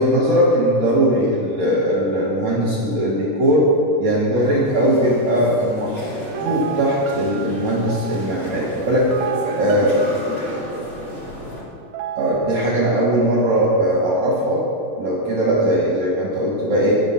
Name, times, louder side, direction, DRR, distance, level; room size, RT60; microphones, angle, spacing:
voice 1, 0.0-3.7 4.0-6.1 6.4-9.1 9.6-9.9 12.2-14.7 15.0-16.9, equal, 65° right, -3 dB, 1.9 m, -19 dB
sound 1, 4.6-11.6, left 1 dB, 60° left, 0.7 m, -34 dB
sound 2, 6.2-12.7, right 10 dB, 80° right, 2.7 m, -32 dB
voice 2, 8.5-10.7, left 1 dB, 90° left, -3 dB, 1.1 m, -34 dB
19.0 x 6.4 x 5.8 m, 2.5 s
omnidirectional pair, 5.7 m